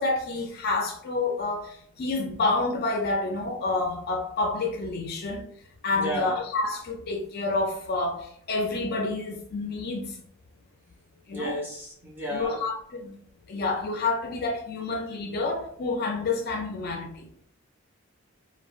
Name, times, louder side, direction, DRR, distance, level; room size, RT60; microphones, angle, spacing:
voice 1, 0.0-5.5 5.8-10.2 11.3-11.6 12.3-13.2 13.5-17.3, left 3 dB, 50° left, 0.4 m, -29 dB
voice 2, 6.0-6.3 11.3-12.6, equal, 10° right, 1.0 m, -32 dB
3.7 x 2.2 x 2.4 m
head